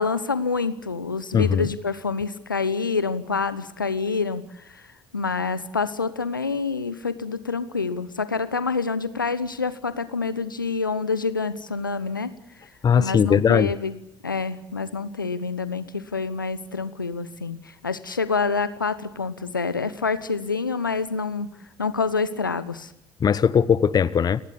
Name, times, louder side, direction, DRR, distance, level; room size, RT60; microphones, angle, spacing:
voice 1, 0.0-4.8 5.1-12.3 13.0-13.9 14.2-21.5 21.8-22.9, left 4 dB, 90° left, 15 dB, 1.0 m, -27 dB
voice 2, 1.3-1.7 12.8-13.7 23.2-24.4, left 7 dB, 40° left, 18 dB, 1.0 m, -19 dB
29.0 x 19.0 x 8.6 m, 0.78 s
figure-of-eight pair, 50°, 11 cm